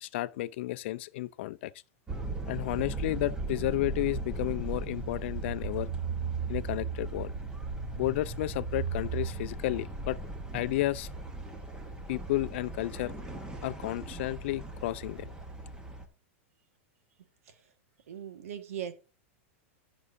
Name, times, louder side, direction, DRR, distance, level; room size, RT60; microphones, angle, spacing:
voice 1, 0.0-1.7 2.5-5.9 6.5-7.3 8.0-10.2 10.5-11.1 12.1-13.1 13.6-15.3, left 17 dB, 55° left, 0.5 m, -32 dB
sound 1, 2.1-16.1, right 3 dB, 10° right, 1.2 m, -37 dB
voice 2, 18.1-18.9, right 9 dB, 85° right, 1.6 m, -38 dB
14.5 x 6.1 x 2.6 m
supercardioid pair, 160°, 7 cm